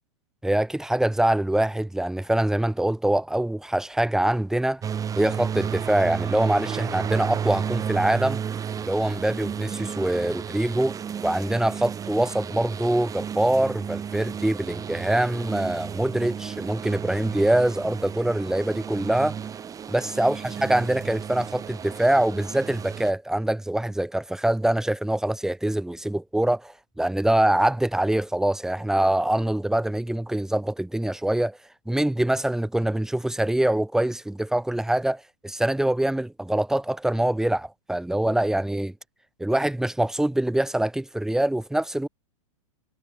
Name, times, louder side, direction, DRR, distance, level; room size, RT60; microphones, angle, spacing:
voice 1, 0.4-4.8 5.2-8.4 8.8-11.0 11.2-19.4 19.9-31.6 31.9-38.9 39.4-42.1, right 1 dB, 5° right, 4.6 m, -24 dB
sound 1, 4.8-23.1, right 8 dB, 20° right, 5.9 m, -32 dB
hypercardioid pair, 135°, 17 cm